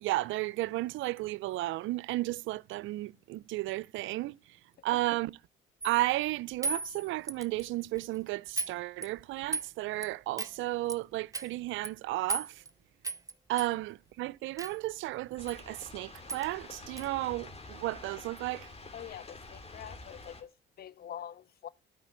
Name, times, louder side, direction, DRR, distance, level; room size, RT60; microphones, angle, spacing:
voice 1, 0.0-4.4 4.8-5.3 5.8-12.6 13.5-18.7, right 18 dB, 75° right, 0.5 m, -33 dB
sound 1, 5.8-6.1 6.6-7.7 8.0-8.2 8.6-8.7 9.0-9.7 10.0-10.1 10.4-10.6 10.9-11.0 11.3-11.5 11.8-11.9 12.3-12.7 13.0-13.3 13.6-13.7 14.6-14.8 15.5-15.6 15.9-16.0 16.3-16.5 17.0-17.1, right 3 dB, 15° right, 0.7 m, -35 dB
sound 2, 15.4-20.4, left 2 dB, 30° left, 2.7 m, -48 dB
voice 2, 18.9-21.7, left 10 dB, 50° left, 0.5 m, -45 dB
12.0 x 5.0 x 8.7 m
supercardioid pair, 80°, 20 cm